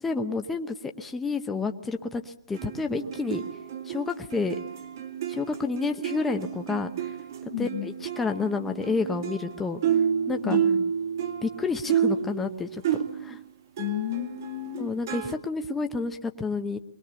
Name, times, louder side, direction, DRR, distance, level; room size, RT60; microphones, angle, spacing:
voice 1, 0.0-3.4 3.8-4.6 5.3-7.1 7.6-9.8 10.3-10.6 11.4-12.8 13.2-13.4 14.8-16.8, left 4 dB, 5° left, 0.9 m, -30 dB
sound 1, 2.5-13.5 13.8-15.4, right 8 dB, 45° right, 1.9 m, -30 dB
voice 2, 7.5-7.9 10.4-10.9 13.8-14.9, left 17 dB, 35° left, 0.8 m, -32 dB
22.5 x 19.0 x 7.0 m
hypercardioid pair, 160°, 2 cm